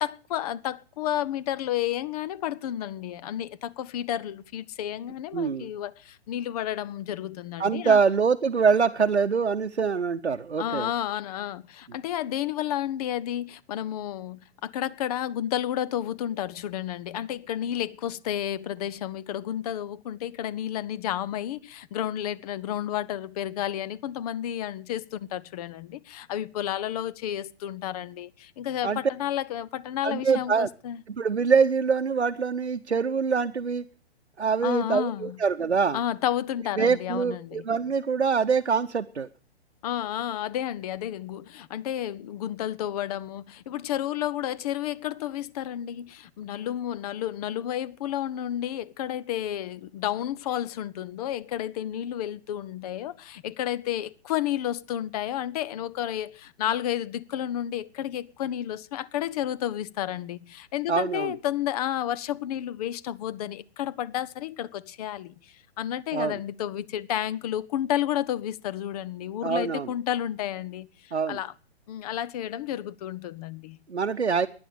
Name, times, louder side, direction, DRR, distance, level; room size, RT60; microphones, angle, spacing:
voice 1, 0.0-8.0 10.6-31.0 34.6-35.4 35.9-37.6 39.8-71.5 71.9-73.8, left 11 dB, 35° left, 0.7 m, -31 dB
voice 2, 5.3-5.7 7.6-10.9 28.8-29.0 30.0-30.7 31.1-33.8 34.4-36.0 36.8-39.3 60.9-61.3 66.1-66.4 69.4-69.9 71.1-71.4 73.9-74.5, right 5 dB, 90° right, 0.8 m, -24 dB
16.0 x 10.5 x 6.6 m
figure-of-eight pair, 125°, 32 cm